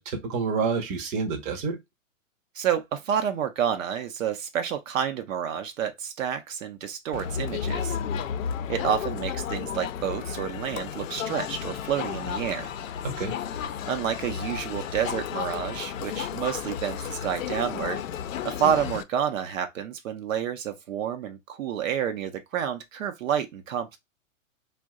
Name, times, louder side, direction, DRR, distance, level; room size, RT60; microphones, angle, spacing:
voice 1, 0.0-1.8 13.0-13.3, right 5 dB, 20° right, 0.6 m, -28 dB
voice 2, 2.5-8.0 8.7-12.7 13.9-18.0 18.4-24.0, right 9 dB, 75° right, 0.7 m, -29 dB
Crowd, 7.1-19.0, left 8 dB, 75° left, 0.5 m, -33 dB
2.7 x 2.2 x 3.5 m
hypercardioid pair, 130°, 40 cm